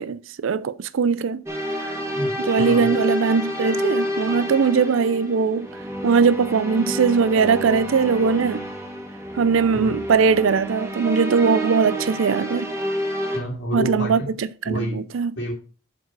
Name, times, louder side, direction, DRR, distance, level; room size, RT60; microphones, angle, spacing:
voice 1, 0.0-1.4 2.5-5.7 6.0-8.7 9.4-12.7 13.7-15.3, right 5 dB, 80° right, 0.4 m, -20 dB
sound 1, 1.5-13.4, equal, 15° right, 1.1 m, -29 dB
voice 2, 2.6-2.9 9.7-9.9 13.3-14.3 14.7-15.0 15.4-15.5, equal, 60° left, 2.0 m, -28 dB
7.8 x 5.3 x 4.6 m
head